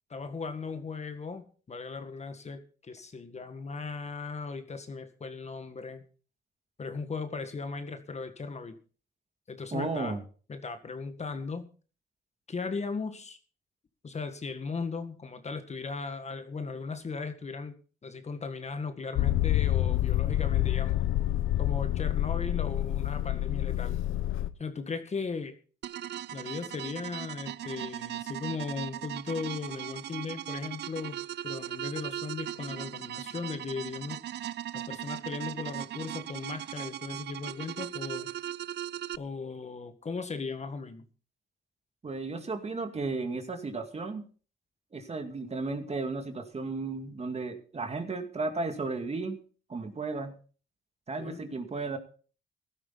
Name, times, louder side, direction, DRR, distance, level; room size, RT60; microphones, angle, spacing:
voice 1, 0.1-6.0 6.8-8.8 9.5-10.2 10.5-11.7 12.5-13.4 14.0-17.7 18.0-21.0 21.6-24.0 24.6-25.5 26.3-34.3 34.7-38.3 39.2-41.0 51.2-51.4, left 4 dB, 35° left, 8 dB, 1.7 m, -37 dB
voice 2, 9.7-10.2 42.0-44.3 44.9-49.4 49.7-50.3 51.1-52.0, right 3 dB, 30° right, 6 dB, 2.4 m, -34 dB
Motor vehicle (road), 19.2-24.5, left 14 dB, 80° left, 0.8 m, -27 dB
sound 1, 25.8-39.2, right 12 dB, 60° right, 0.5 m, -38 dB
15.5 x 12.5 x 4.1 m, 0.40 s
cardioid pair, 90°, 20 cm